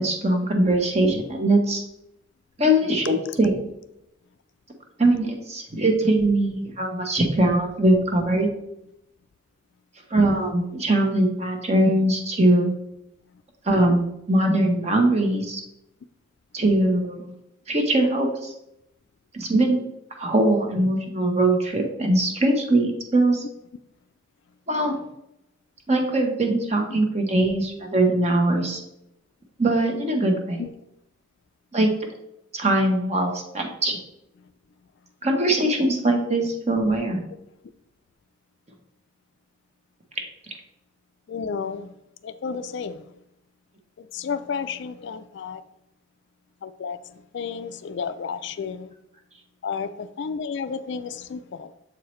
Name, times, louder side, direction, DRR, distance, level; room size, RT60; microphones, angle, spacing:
voice 1, 0.0-1.8 2.6-3.7 5.0-8.5 10.1-12.7 13.6-15.6 16.5-17.3 17.7-18.5 19.3-19.8 20.2-23.4 24.7-25.0 25.9-28.8 29.6-30.6 31.7-31.9 32.5-34.0 35.2-37.2, right 1 dB, 30° right, 3 dB, 0.9 m, -21 dB
voice 2, 41.3-41.9 42.2-43.1 44.0-45.6 46.6-48.9 49.6-51.7, left 6 dB, 60° left, 12 dB, 0.3 m, -32 dB
7.2 x 4.6 x 3.1 m, 0.83 s
head